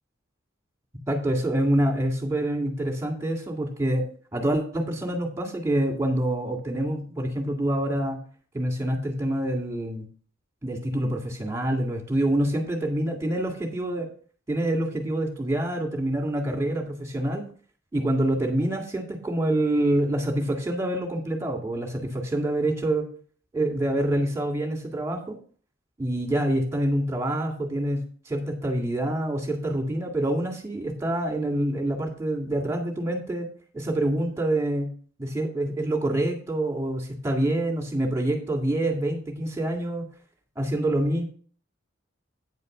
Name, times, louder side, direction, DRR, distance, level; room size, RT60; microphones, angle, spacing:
voice 1, 1.1-4.0 4.3-8.2 8.5-10.1 10.6-14.1 14.5-17.4 17.9-23.1 23.5-25.4 26.0-33.5 33.7-34.9 35.2-40.1 40.6-41.2, right 1 dB, 15° right, 3 dB, 2.2 m, -26 dB
9.6 x 4.9 x 6.6 m, 0.41 s
head